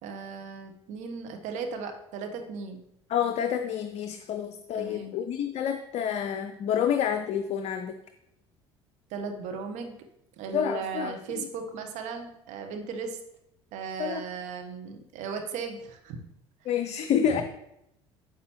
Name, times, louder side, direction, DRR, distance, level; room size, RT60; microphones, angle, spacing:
voice 1, 0.0-2.8 4.8-5.1 9.1-10.0 10.4-13.2 13.7-16.3 17.2-17.4, right 5 dB, 55° right, 5 dB, 1.2 m, -36 dB
voice 2, 3.1-8.0 10.5-11.5 14.0-14.2 16.7-17.4, left 8 dB, 45° left, 8 dB, 0.6 m, -28 dB
9.5 x 6.8 x 3.1 m, 0.81 s
figure-of-eight pair, 55°, 15 cm